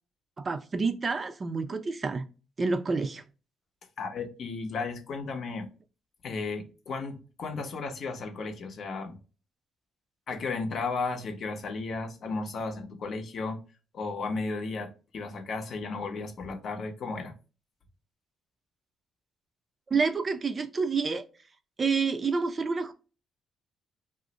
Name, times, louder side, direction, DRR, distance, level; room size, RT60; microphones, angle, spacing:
voice 1, 0.4-2.2 2.6-3.2 19.9-21.2 21.8-22.9, right 4 dB, 35° right, 0.4 m, -28 dB
voice 2, 4.0-5.7 6.2-9.2 10.3-13.6 13.9-17.3, left 3 dB, 60° left, 0.7 m, -34 dB
2.5 x 2.0 x 3.8 m
cardioid pair, 90°, 0 cm